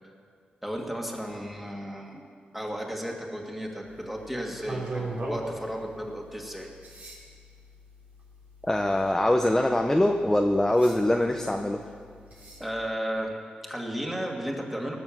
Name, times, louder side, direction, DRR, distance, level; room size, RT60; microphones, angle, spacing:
voice 1, 0.6-2.2 2.5-6.7 12.6-15.0, equal, 5° right, 0 dB, 2.3 m, -34 dB
sound 1, 3.9-12.7, right 2 dB, 55° right, 3.4 m, -42 dB
voice 2, 8.6-11.8, left 1 dB, 10° left, 3 dB, 0.8 m, -23 dB
18.0 x 7.0 x 7.3 m, 2.1 s
cardioid pair, 80°, 3 cm